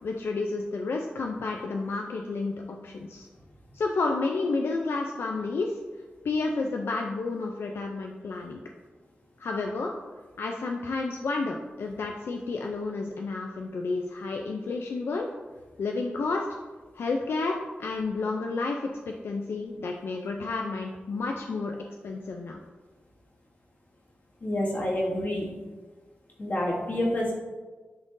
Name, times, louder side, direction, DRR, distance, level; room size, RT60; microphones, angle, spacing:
voice 1, 0.0-3.3 3.7-5.8 6.2-8.6 9.4-9.9 10.4-15.3 15.8-16.5 16.9-21.7 22.0-22.6, left 3 dB, 85° left, 1 dB, 0.4 m, -31 dB
voice 2, 24.4-25.5 26.4-27.3, left 1 dB, 45° left, -5 dB, 1.9 m, -28 dB
11.0 x 3.7 x 2.6 m, 1.3 s
wide cardioid pair, 80°, 4 cm